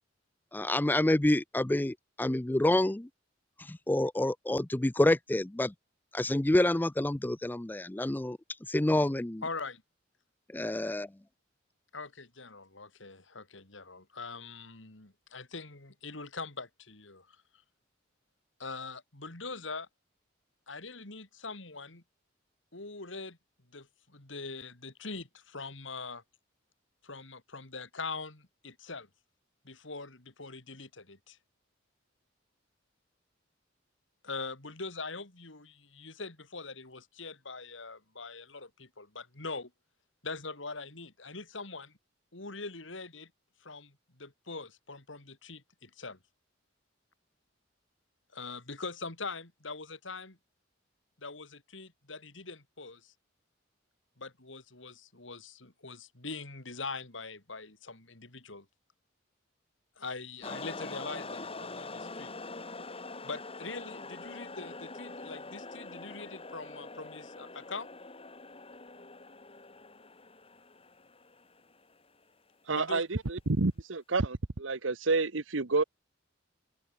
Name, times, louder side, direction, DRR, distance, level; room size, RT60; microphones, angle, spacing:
voice 1, 0.5-3.1 3.7-5.7 6.1-8.4 8.7-9.4 10.5-11.1, left 1 dB, 10° left, 0.4 m, -28 dB
voice 2, 9.4-9.8 11.9-17.4 18.6-19.9 20.7-22.0 22.7-23.4 23.7-26.2 27.0-29.1 29.6-31.4 34.2-39.7 40.2-42.0 42.3-43.3 43.6-46.2 48.3-50.4 51.2-53.1 54.2-58.7 60.0-62.3 63.2-67.9 72.7-73.0, left 4 dB, 75° left, 3.6 m, -43 dB
sound 1, 60.4-71.9, left 3 dB, 30° left, 5.1 m, -44 dB
voice 3, 72.7-75.8, right 3 dB, 85° right, 1.2 m, -29 dB
open air
head